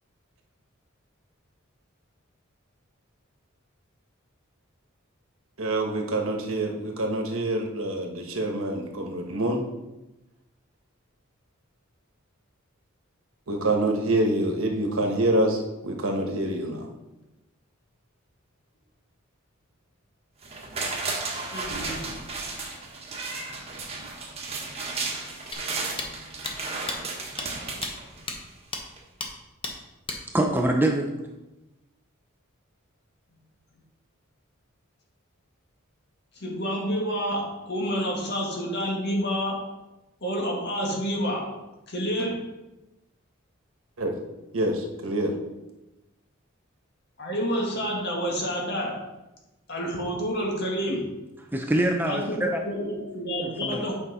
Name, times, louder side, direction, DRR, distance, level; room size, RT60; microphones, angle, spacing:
voice 1, 5.6-9.6 13.5-16.9 44.0-44.1 44.5-45.4, right 1 dB, 80° right, 1.3 m, -26 dB
sound 1, 20.4-28.6 29.0-29.1, right 3 dB, 30° right, 1.4 m, -34 dB
voice 2, 21.5-22.2 24.6-25.2 36.4-39.6 40.2-41.5 41.9-42.5 47.2-49.1 49.7-51.2 52.1-54.0, equal, 55° left, 1.8 m, -29 dB
sound 2, 25.5-25.6 26.0-26.1 26.4-26.5 26.9-27.0 27.4-27.5 27.8-27.9 28.3-28.4 28.7-28.8 29.2-29.3 29.6-29.7 30.1-30.2, left 3 dB, 25° left, 1.0 m, -32 dB
voice 3, 30.3-31.1 51.5-52.6 53.4-53.8, right 1 dB, 10° right, 0.6 m, -24 dB
8.9 x 5.6 x 4.1 m
head